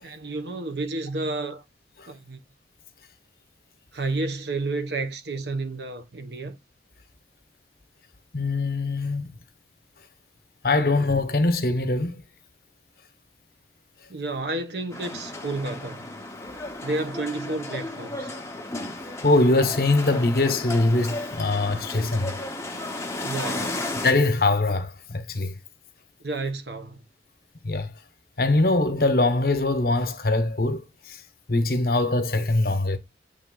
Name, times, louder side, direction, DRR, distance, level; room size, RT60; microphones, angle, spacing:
voice 1, 0.0-1.6 2.1-2.4 3.9-6.6 14.1-16.1 16.8-18.3 23.2-23.9 26.2-27.0, right 2 dB, 70° right, 1.1 m, -31 dB
voice 2, 8.3-9.3 10.6-12.2 19.2-22.3 24.0-25.5 27.6-27.9 28.4-31.2 31.5-33.0, left 2 dB, 55° left, 1.1 m, -22 dB
sound 1, 14.9-24.1, left 2 dB, 15° left, 1.0 m, -34 dB
8.5 x 3.4 x 3.9 m
head